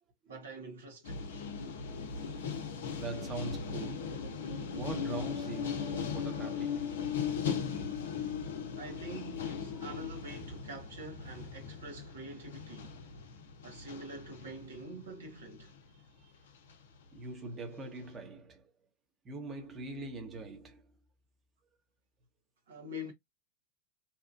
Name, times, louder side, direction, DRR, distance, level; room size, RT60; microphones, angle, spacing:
voice 1, 0.3-1.3 8.8-13.0 13.6-15.7 22.7-23.1, equal, 70° right, 1.0 m, -45 dB
sound 1, 1.0-16.0 16.7-17.0, left 6 dB, 70° left, 0.6 m, -38 dB
voice 2, 1.5-4.3 4.7-7.4 9.7-10.0 15.9-16.5 17.1-18.7 19.2-20.9, right 2 dB, 30° right, 1.0 m, -44 dB
2.8 x 2.3 x 2.4 m
figure-of-eight pair, 85°, 0 cm